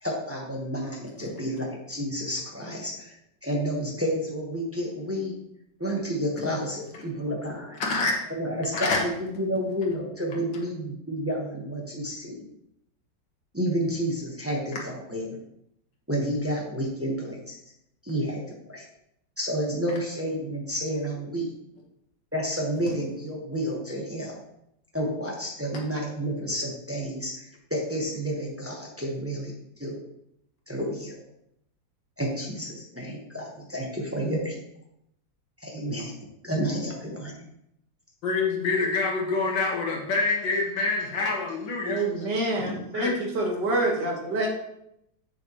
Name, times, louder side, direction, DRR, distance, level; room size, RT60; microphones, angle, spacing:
voice 1, 0.0-3.1 3.4-5.3 5.8-7.8 8.4-8.9 9.2-12.4 13.5-15.3 16.1-17.5 18.0-18.4 18.7-18.8 19.4-21.5 22.3-24.3 24.9-29.5 29.8-30.0 30.7-31.2 32.2-34.6 35.6-36.1 36.4-37.3, equal, 10° right, -2 dB, 0.9 m, -30 dB
voice 2, 7.8-8.1 8.7-9.0 10.3-10.4 19.9-20.0 38.2-42.0 42.6-43.1, left 3 dB, 80° left, -1 dB, 1.9 m, -26 dB
voice 3, 41.8-44.5, right 2 dB, 65° right, -1 dB, 2.1 m, -27 dB
7.6 x 6.9 x 3.0 m, 0.78 s
omnidirectional pair, 2.0 m